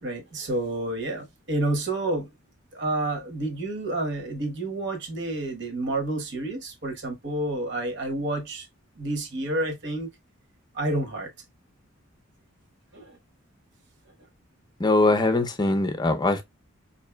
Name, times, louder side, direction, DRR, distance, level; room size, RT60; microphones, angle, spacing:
voice 1, 0.0-2.3 2.7-8.7 9.0-10.1 10.7-11.3 12.9-13.2, right 2 dB, 60° right, 1.2 m, -29 dB
voice 2, 14.8-16.4, left 2 dB, 20° left, 0.6 m, -22 dB
5.3 x 2.7 x 2.2 m
head